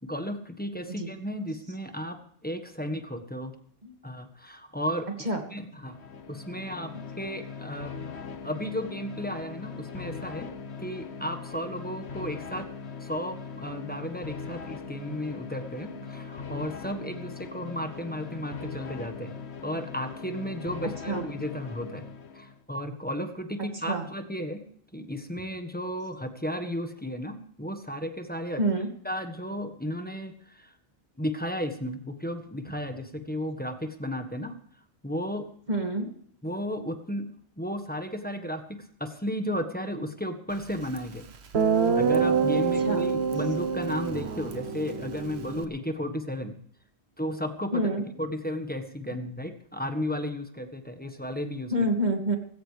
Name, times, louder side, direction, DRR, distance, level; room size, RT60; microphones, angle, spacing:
voice 1, 0.0-3.5 4.0-5.1 5.5-6.0 6.3-7.9 8.4-10.5 10.8-12.7 13.0-19.3 19.6-22.1 22.3-24.6 24.9-28.6 29.0-30.7 31.2-34.6 35.0-35.5 36.4-37.3 37.6-41.3 41.9-46.6 47.2-47.8 48.2-51.7, equal, 10° left, 7 dB, 1.5 m, -34 dB
sound 1, 5.7-22.6, left 5 dB, 85° left, 1.3 m, -40 dB
voice 2, 28.6-28.9 35.7-36.1 42.8-43.1 47.7-48.0 51.7-52.4, right 1 dB, 45° right, 3 dB, 2.5 m, -27 dB
Guitar, 41.0-41.1 41.5-45.7, right 6 dB, 80° right, 1.4 m, -26 dB
19.0 x 17.0 x 3.4 m, 0.63 s
omnidirectional pair, 1.1 m